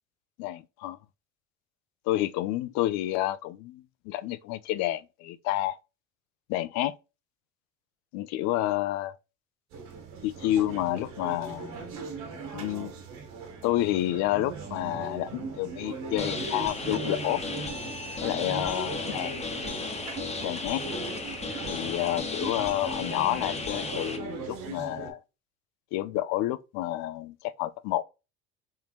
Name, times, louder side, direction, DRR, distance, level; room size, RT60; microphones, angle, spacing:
voice 1, 0.4-1.0 2.1-5.8 6.5-6.9 8.1-9.1 10.2-11.9 12.5-12.9 13.6-17.4 18.2-19.5 20.4-20.8 21.7-25.2 25.9-28.0, left 14 dB, 65° left, 0.5 m, -29 dB
sound 1, 9.7-25.1, right 4 dB, 65° right, 1.3 m, -39 dB
sound 2, 16.2-24.2, left 3 dB, 20° left, 0.9 m, -35 dB
3.7 x 2.8 x 2.3 m
hypercardioid pair, 80°, 31 cm